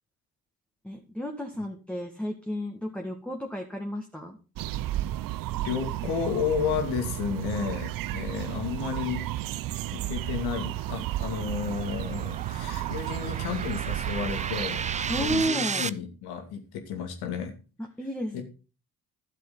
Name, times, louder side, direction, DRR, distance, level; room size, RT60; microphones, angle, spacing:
voice 1, 0.8-4.4 15.1-15.9 17.8-18.4, equal, 5° left, 1 dB, 2.0 m, -32 dB
sound 1, 4.6-15.5, right 15 dB, 55° right, 0.7 m, -33 dB
voice 2, 5.6-9.2 9.9-14.8 15.2-16.6 16.9-17.5 18.3-18.4, left 7 dB, 70° left, 5 dB, 2.5 m, -32 dB
sound 2, 9.2-15.9, right 6 dB, 20° right, 0.5 m, -36 dB
12.5 x 7.6 x 3.9 m, 0.34 s
hypercardioid pair, 55°, 40 cm